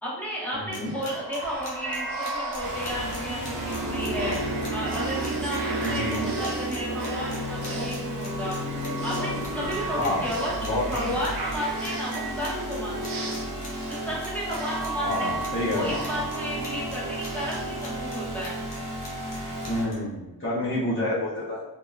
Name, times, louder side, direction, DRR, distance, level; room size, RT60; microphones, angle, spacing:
voice 1, 0.0-4.4 4.7-8.6 9.0-13.4 13.9-18.6, equal, 5° left, -7 dB, 1.0 m, -33 dB
voice 2, 0.5-0.9 5.8-6.3 9.9-10.4 10.6-11.2 15.0-16.1 19.4-21.6, left 1 dB, 30° left, -10 dB, 0.7 m, -29 dB
sound 1, 0.7-19.9, left 3 dB, 80° left, 0.8 m, -42 dB
sound 2, 0.8-18.5, right 2 dB, 85° right, 0.7 m, -34 dB
sound 3, 2.6-19.8, equal, 50° right, 0.8 m, -35 dB
2.7 x 2.2 x 2.3 m, 0.96 s
cardioid pair, 80°, 41 cm